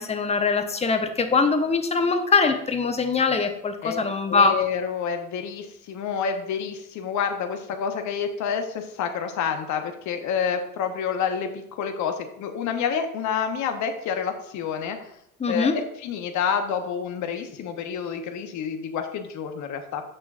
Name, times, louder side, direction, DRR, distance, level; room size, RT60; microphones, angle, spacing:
voice 1, 0.0-4.6 15.4-15.8, left 4 dB, 15° left, 7 dB, 0.9 m, -22 dB
voice 2, 4.3-15.1 15.5-20.0, left 7 dB, 40° left, 6 dB, 1.2 m, -28 dB
9.0 x 6.2 x 2.5 m, 0.76 s
figure-of-eight pair, 75°, 43 cm